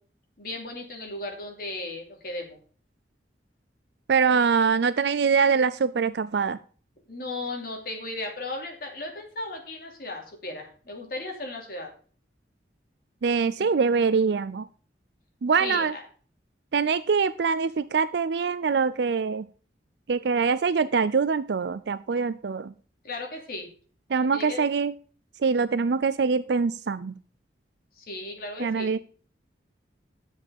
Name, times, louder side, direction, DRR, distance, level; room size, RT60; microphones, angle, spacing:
voice 1, 0.4-2.6 7.1-11.9 13.6-13.8 15.6-16.0 23.0-23.7 24.3-24.7 28.0-28.9, left 2 dB, 55° left, 1 dB, 3.0 m, -36 dB
voice 2, 4.1-6.6 13.2-14.7 15.4-15.9 16.7-19.5 20.1-22.7 24.1-24.9 25.4-27.1 28.6-29.0, right 5 dB, 70° right, 14 dB, 0.4 m, -24 dB
10.5 x 7.3 x 5.2 m, 0.42 s
head